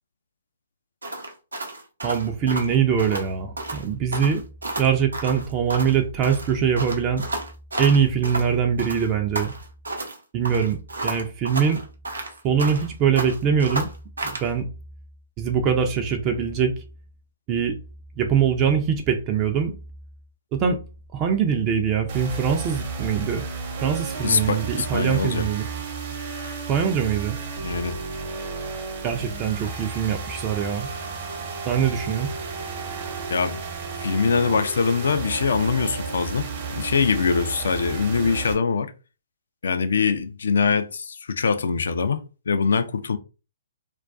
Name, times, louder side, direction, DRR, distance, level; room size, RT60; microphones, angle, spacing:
sound 1, 1.0-3.3 3.6-3.8 4.1-6.0 6.2-8.5 8.8-10.2 10.4-12.9 13.1-14.5, right 2 dB, 85° right, 0.7 m, -31 dB
voice 1, 2.0-4.4 4.8-7.2 7.8-9.5 10.3-10.8 11.0-11.8 12.4-13.9 14.2-14.7 15.4-16.7 17.5-17.8 18.2-19.7 20.5-20.8 21.1-23.4 23.8-25.6 26.7-27.4 29.0-30.9 31.7-32.3, right 7 dB, 25° right, 0.4 m, -23 dB
sound 2, 22.1-38.5, right 5 dB, 45° right, 0.8 m, -33 dB
voice 2, 24.2-25.5 27.6-28.0 33.3-33.6 34.0-38.9 39.6-43.2, left 5 dB, 70° left, 0.3 m, -23 dB
2.3 x 2.2 x 2.4 m
figure-of-eight pair, 130°, 0 cm